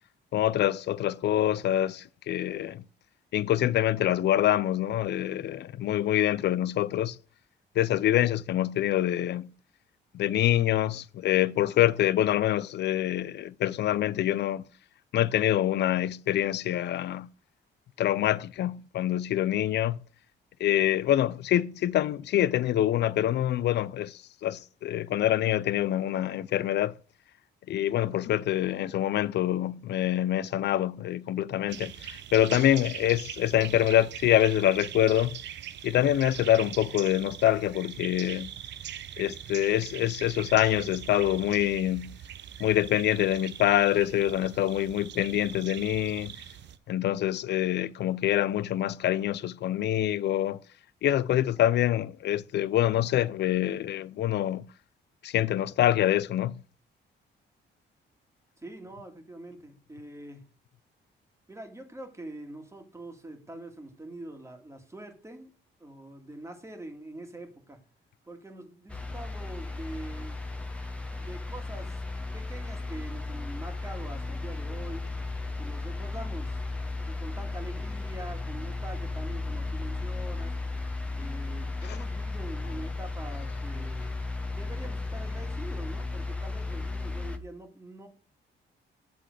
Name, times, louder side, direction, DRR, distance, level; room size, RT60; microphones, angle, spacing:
voice 1, 0.3-2.8 3.3-7.2 7.8-9.5 10.1-14.6 15.1-17.3 18.0-20.0 20.6-26.9 27.7-35.4 35.8-38.5 39.2-42.1 42.6-46.3 46.9-50.6 51.0-54.6 55.2-56.6, left 12 dB, 60° left, 0.4 m, -25 dB
sound 1, 31.7-46.8, right 10 dB, 65° right, 0.6 m, -42 dB
voice 2, 58.6-60.4 61.5-65.5 65.8-67.8 68.3-70.4 71.1-72.0 72.3-75.1 75.6-76.6 77.0-80.5 81.2-88.1, right 1 dB, 15° right, 1.8 m, -44 dB
sound 2, 68.9-87.4, left 3 dB, 5° left, 1.0 m, -35 dB
8.4 x 3.8 x 6.5 m
cardioid pair, 90°, 20 cm